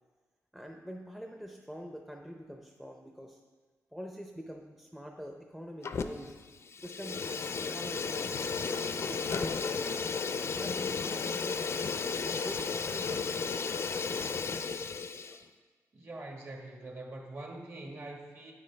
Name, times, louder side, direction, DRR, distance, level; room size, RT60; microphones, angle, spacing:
voice 1, 0.5-3.4 3.9-6.4 6.8-10.1 10.5-13.5, equal, ahead, 2 dB, 0.6 m, -45 dB
Fire, 5.8-6.4 6.6-15.4, left 5 dB, 50° left, 0.4 m, -34 dB
voice 2, 15.9-18.5, right 2 dB, 45° right, 1 dB, 1.5 m, -44 dB
9.3 x 8.5 x 3.3 m, 1.4 s
wide cardioid pair, 120°, 6 cm